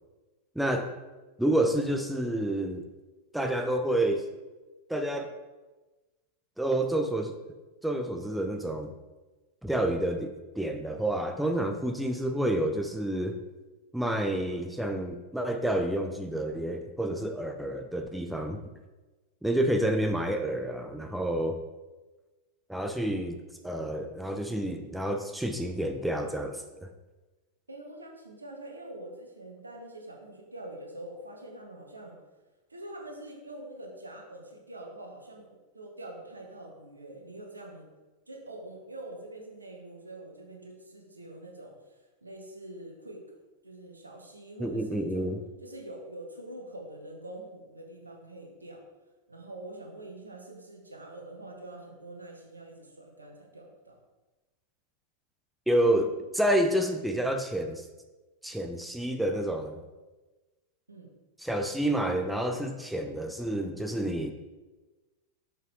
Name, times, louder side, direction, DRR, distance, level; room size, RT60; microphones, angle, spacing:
voice 1, 0.6-0.9 1.4-2.9 3.3-4.3 4.9-5.3 6.6-7.3 7.8-8.9 9.6-10.3 10.6-13.4 13.9-18.6 19.4-21.6 22.7-26.9 44.6-45.4 55.7-57.8 58.4-59.8 61.4-64.3, right 1 dB, 5° right, 5 dB, 0.6 m, -29 dB
voice 2, 27.7-32.2 32.7-35.5 35.7-37.8 38.3-43.2 43.6-45.3 45.6-48.8 49.3-54.0 60.9-61.2, right 1 dB, 80° right, 1 dB, 1.3 m, -45 dB
6.4 x 6.2 x 3.4 m, 1.2 s
figure-of-eight pair, 90°, 0 cm